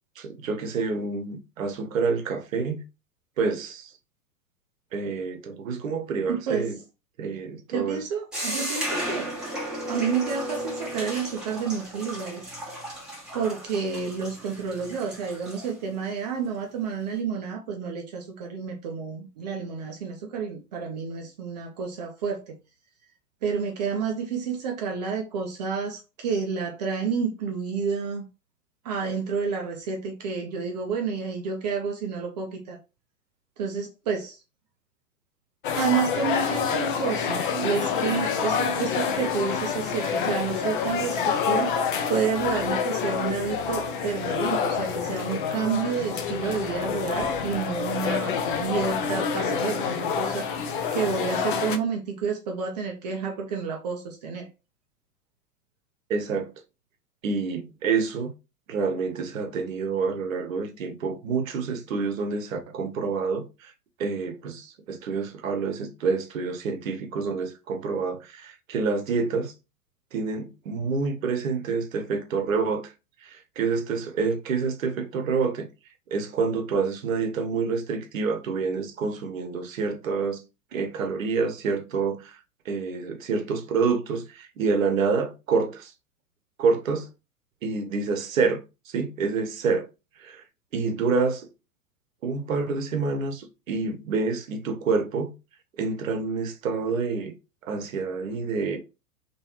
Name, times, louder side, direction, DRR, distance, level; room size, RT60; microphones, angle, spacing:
voice 1, 0.2-2.8 3.4-3.9 4.9-6.8 7.2-8.0 56.1-56.5 57.2-58.3 58.7-63.7 64.0-69.5 70.1-72.9 73.2-75.7 76.1-80.4 80.7-82.4 82.6-85.9 86.6-87.1 87.6-89.9 90.2-90.4 90.7-91.5 92.2-95.3 95.8-97.4 97.6-98.8, right 4 dB, 60° right, 0.9 m, -27 dB
voice 2, 6.3-6.7 7.7-9.3 9.9-12.6 13.3-22.6 23.4-28.3 28.8-32.8 33.6-34.4 35.7-41.7 42.1-50.5 50.9-54.5, right 6 dB, 30° right, 0.4 m, -29 dB
sound 1, 8.3-15.7, equal, ahead, 1.1 m, -34 dB
sound 2, 35.6-51.8, left 6 dB, 35° left, 0.4 m, -27 dB
3.1 x 3.0 x 2.8 m
figure-of-eight pair, 100°, 46 cm